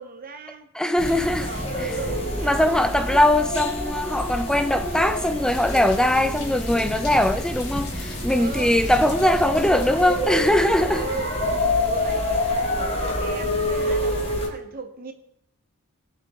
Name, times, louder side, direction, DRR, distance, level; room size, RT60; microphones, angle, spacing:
voice 1, 0.0-0.7 1.2-3.4 8.3-8.8 10.9-11.3 11.8-15.1, right 4 dB, 40° right, 0.9 m, -37 dB
voice 2, 0.7-1.5 1.8-1.9 2.4-11.1, left 1 dB, 5° left, 0.5 m, -21 dB
sound 1, 1.0-14.5, left 1 dB, 30° left, 1.9 m, -27 dB
sound 2, 5.5-10.5, left 4 dB, 90° left, 3.1 m, -41 dB
20.5 x 6.9 x 3.5 m
head